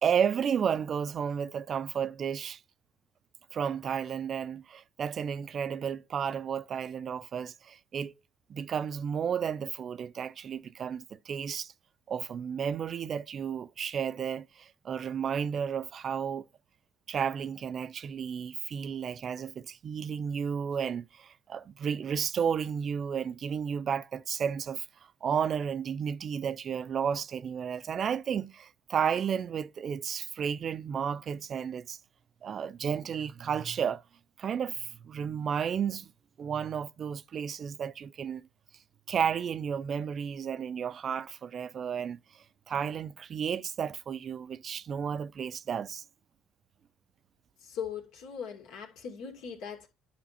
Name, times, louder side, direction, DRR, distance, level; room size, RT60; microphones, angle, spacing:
voice 1, 0.0-2.6 3.5-8.1 8.5-11.7 12.1-16.4 17.1-24.9 25.2-32.0 32.4-34.0 34.4-36.1 36.4-38.4 39.1-46.0, right 7 dB, 50° right, 0.4 m, -32 dB
voice 2, 47.6-49.9, left 7 dB, 75° left, 2.4 m, -39 dB
10.5 x 5.0 x 4.3 m
supercardioid pair, 75°, 0 cm